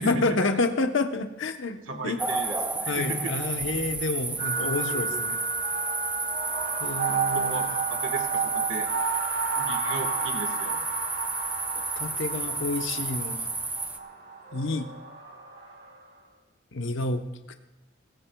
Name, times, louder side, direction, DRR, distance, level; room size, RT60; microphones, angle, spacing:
voice 1, 0.0-2.2 2.9-5.4 6.8-7.7 12.0-13.5 14.5-14.9 16.7-17.2, left 3 dB, 70° left, 5 dB, 1.0 m, -29 dB
voice 2, 1.9-3.4 7.1-8.9 9.6-10.8, right 2 dB, 75° right, 4 dB, 1.6 m, -35 dB
sound 1, 2.2-14.0, right 3 dB, 10° right, 0.7 m, -32 dB
sound 2, 4.4-16.0, right 5 dB, 55° right, 2.2 m, -32 dB
25.5 x 15.5 x 2.3 m, 1.1 s
head